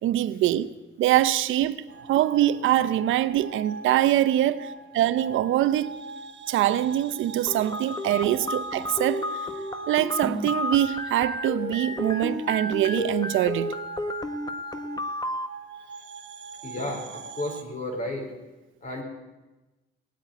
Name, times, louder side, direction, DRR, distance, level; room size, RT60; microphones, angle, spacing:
voice 1, 0.0-5.9 6.5-9.5 9.9-13.8, right 13 dB, 80° right, 0.7 m, -24 dB
sound 1, 1.9-17.6, right 4 dB, 65° right, 1.1 m, -42 dB
sound 2, 7.5-15.5, left 2 dB, 20° left, 1.2 m, -32 dB
voice 2, 16.6-18.3 18.8-19.0, left 1 dB, 40° left, 4.6 m, -32 dB
18.0 x 9.0 x 8.4 m
cardioid pair, 90°, 20 cm